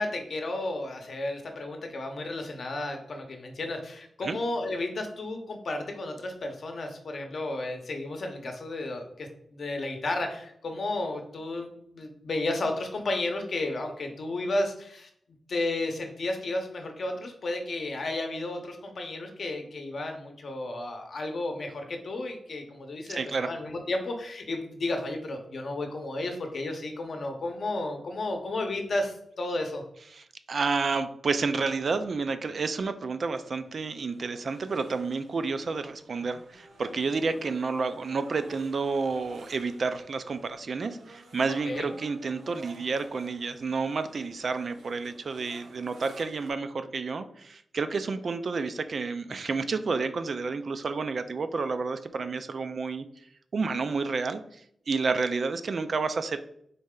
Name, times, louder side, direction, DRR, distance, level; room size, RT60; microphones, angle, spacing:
voice 1, 0.0-15.1 15.5-29.8 41.7-41.9, left 2 dB, 50° left, 4 dB, 0.7 m, -33 dB
voice 2, 23.1-23.5 30.1-53.1 53.5-54.6 54.9-56.4, right 4 dB, 50° right, 10 dB, 0.3 m, -30 dB
sound 1, 33.3-46.5, right 2 dB, 80° right, 0.9 m, -51 dB
4.1 x 3.2 x 3.7 m, 0.69 s
wide cardioid pair, 145°, 0 cm